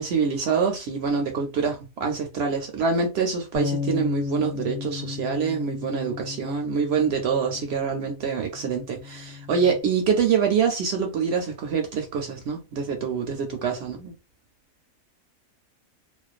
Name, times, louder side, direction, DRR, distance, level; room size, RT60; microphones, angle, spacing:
voice 1, 0.0-14.1, right 6 dB, 65° right, 0.7 m, -25 dB
sound 1, 3.6-9.8, left 6 dB, 70° left, 0.9 m, -34 dB
2.4 x 2.2 x 2.4 m
omnidirectional pair, 1.4 m